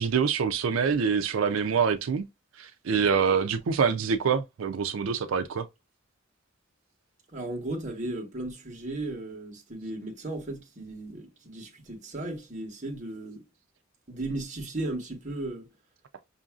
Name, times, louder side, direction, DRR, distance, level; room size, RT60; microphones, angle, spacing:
voice 1, 0.0-2.3 2.6-5.7, right 6 dB, 90° right, 0.4 m, -25 dB
voice 2, 7.3-13.4 14.1-15.7, right 2 dB, 40° right, 1.1 m, -35 dB
5.5 x 2.6 x 2.3 m
head